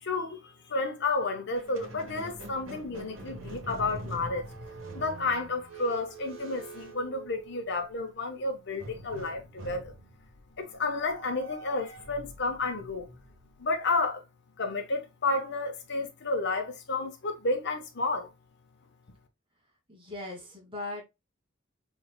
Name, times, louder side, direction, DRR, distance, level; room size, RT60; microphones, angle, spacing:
voice 1, 0.0-4.5 4.9-9.9 10.6-13.1 13.6-14.2 14.6-18.3, left 3 dB, 60° left, 1.1 m, -31 dB
Squeak, 1.5-7.8 8.8-14.0, right 2 dB, 75° right, 1.2 m, -45 dB
voice 2, 19.9-21.1, left 2 dB, 25° right, 2.2 m, -39 dB
4.7 x 3.8 x 2.2 m
head